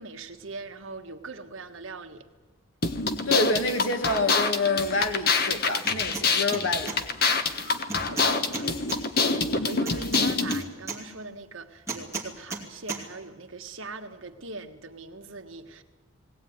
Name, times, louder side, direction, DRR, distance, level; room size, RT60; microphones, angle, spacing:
voice 1, 0.0-2.3 7.9-8.7 9.0-15.8, right 3 dB, 75° right, 1.6 m, -41 dB
sound 1, 2.8-10.6, left 4 dB, 45° left, 1.3 m, -26 dB
voice 2, 3.3-6.9, left 2 dB, 70° left, 2.2 m, -27 dB
sound 2, 5.8-6.3 6.5-7.0 7.9-9.0 9.9-11.0 11.9-12.6 12.9-13.0, right 3 dB, 15° right, 2.7 m, -34 dB
20.5 x 18.0 x 9.5 m
head